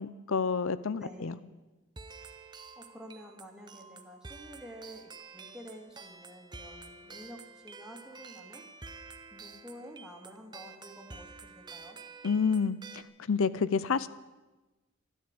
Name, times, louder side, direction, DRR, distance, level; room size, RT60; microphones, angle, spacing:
voice 1, 0.0-1.4 12.2-13.0 13.3-14.1, left 5 dB, 65° left, 17 dB, 0.6 m, -29 dB
voice 2, 0.9-1.4 2.8-8.7 9.3-12.0, equal, 5° right, 0 dB, 2.0 m, -49 dB
sound 1, 2.0-13.0, right 4 dB, 20° right, 0.8 m, -49 dB
12.5 x 11.5 x 8.7 m, 1.1 s
head